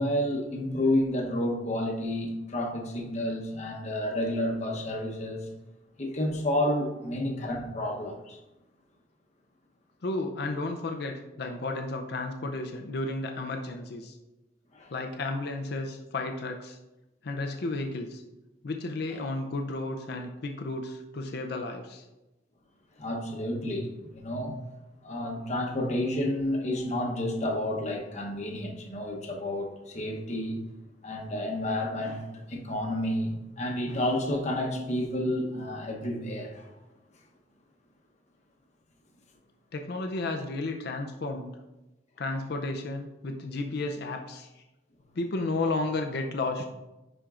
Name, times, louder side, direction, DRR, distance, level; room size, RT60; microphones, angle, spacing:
voice 1, 0.0-5.5 6.0-8.4 14.7-14.9 19.1-19.2 23.0-24.6 25.0-30.6 31.0-36.8, left 1 dB, 40° left, 1 dB, 0.9 m, -30 dB
voice 2, 10.0-14.2 14.9-16.8 17.2-18.2 18.6-22.0 39.7-41.5 42.2-44.6 45.2-46.7, left 2 dB, 60° left, 4 dB, 0.5 m, -33 dB
10.0 x 4.4 x 2.5 m, 1.0 s
head